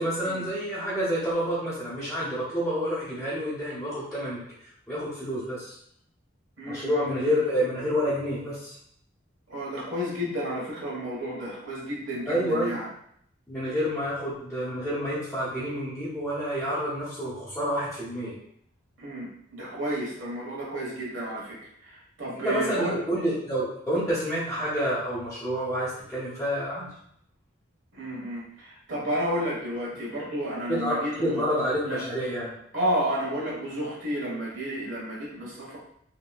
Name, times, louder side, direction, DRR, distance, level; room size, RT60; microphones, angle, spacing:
voice 1, 0.0-4.4 4.9-5.8 6.6-8.7 12.3-12.7 13.5-18.3 22.4-26.9 30.7-32.5, equal, ahead, -14 dB, 1.0 m, -28 dB
voice 2, 6.6-7.4 9.5-12.9 19.0-23.0 27.9-31.5 31.8-32.0 32.7-35.8, equal, 75° right, -5 dB, 1.2 m, -32 dB
3.0 x 2.9 x 2.3 m, 0.68 s
head